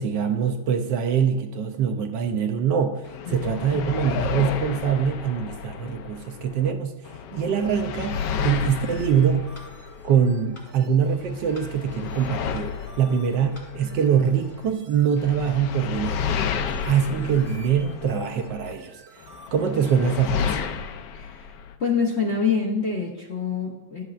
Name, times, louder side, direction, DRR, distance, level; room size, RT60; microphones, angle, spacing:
voice 1, 0.0-6.9 7.3-9.5 10.0-12.7 13.0-16.2 16.8-19.0 19.5-20.6, right 7 dB, 75° right, 5 dB, 1.2 m, -23 dB
sound 1, 3.0-6.7 7.0-10.7 11.1-14.7 15.2-18.7 19.2-21.7, left 7 dB, 70° left, 1.2 m, -32 dB
sound 2, 8.0-20.3, right 2 dB, 90° right, 2.0 m, -50 dB
sound 3, 8.5-8.7 9.5-9.7 10.5-10.7 11.5-11.7 12.5-12.7 13.5-13.7, left 1 dB, 20° left, 1.2 m, -47 dB
voice 2, 21.1-21.5 21.8-24.0, left 5 dB, 55° left, -1 dB, 0.8 m, -26 dB
11.5 x 8.0 x 2.4 m, 1.1 s
omnidirectional pair, 2.2 m